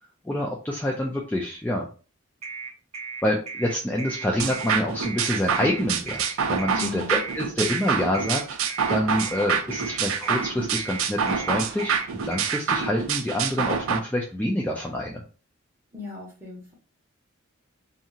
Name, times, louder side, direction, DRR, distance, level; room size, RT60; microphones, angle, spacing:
voice 1, 0.2-1.9 3.2-15.2, left 1 dB, 10° left, -2 dB, 0.3 m, -27 dB
sound 1, 2.4-12.6, right 4 dB, 30° right, 0.7 m, -36 dB
sound 2, 4.4-14.0, right 6 dB, 80° right, 0.4 m, -27 dB
voice 2, 6.7-7.2 15.9-16.7, left 4 dB, 15° right, -4 dB, 1.2 m, -36 dB
2.7 x 2.7 x 2.4 m, 0.36 s
head